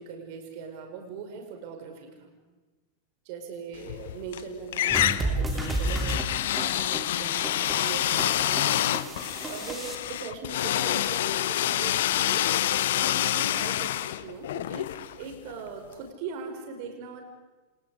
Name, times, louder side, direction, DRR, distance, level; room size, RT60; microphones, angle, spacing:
voice 1, 0.0-2.3 3.3-6.2 6.5-13.9 14.2-17.2, right 5 dB, 45° right, 4 dB, 5.2 m, -40 dB
sound 1, 3.8-4.4 4.7-15.6, left 12 dB, 55° left, 0.8 m, -27 dB
sound 2, 4.9-10.0, right 2 dB, 10° right, 3.1 m, -32 dB
28.0 x 27.5 x 5.1 m, 1.2 s
figure-of-eight pair, 90°, 0 cm